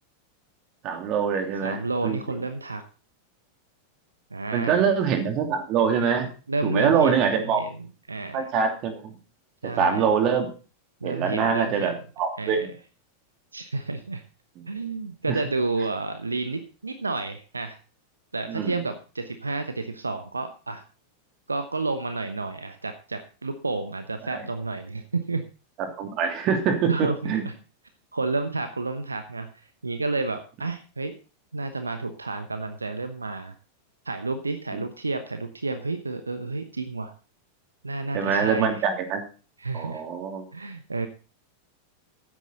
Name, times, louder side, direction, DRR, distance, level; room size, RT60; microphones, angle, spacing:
voice 1, 0.8-2.2 4.5-6.3 6.6-7.6 8.3-9.1 9.8-10.5 11.0-12.7 15.3-15.4 18.5-18.8 24.3-24.4 26.0-27.4 34.7-34.8 38.1-39.2 39.7-40.4, right 6 dB, 40° right, 5 dB, 2.9 m, -24 dB
voice 2, 1.6-2.8 4.3-4.9 6.0-8.5 9.6-10.1 11.0-12.0 12.4-12.7 13.5-14.2 14.7-17.8 18.3-20.8 21.5-25.5 26.9-27.5 28.1-31.1 31.5-33.5 34.0-37.1 37.8-38.9 39.6-40.0 40.5-41.1, right 3 dB, 80° right, 9 dB, 1.0 m, -30 dB
13.5 x 9.7 x 4.0 m, 0.35 s
figure-of-eight pair, 90°, 0 cm